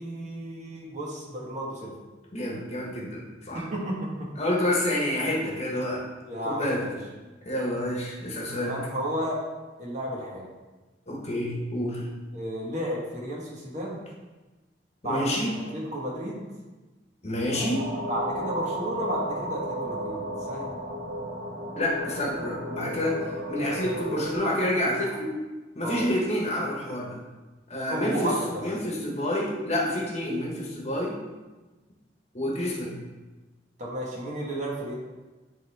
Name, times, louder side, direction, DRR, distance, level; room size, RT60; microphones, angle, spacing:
voice 1, 0.0-1.9 3.5-4.3 6.2-7.0 8.6-9.4 9.8-10.5 12.3-14.0 15.0-16.5 18.1-20.2 20.5-20.7 25.8-26.1 27.9-28.6 33.8-34.9, right 1 dB, 40° right, -4 dB, 1.5 m, -32 dB
voice 2, 2.3-3.6 4.4-6.0 6.4-6.9 7.4-8.7 11.1-12.1 15.0-15.5 17.2-17.9 21.8-25.3 25.7-27.2 27.7-28.3 28.6-31.2 32.3-32.9, left 1 dB, 40° left, -3 dB, 1.3 m, -28 dB
sound 1, 17.5-24.4, equal, 85° right, 1.0 m, -34 dB
9.9 x 3.7 x 3.5 m, 1.2 s
head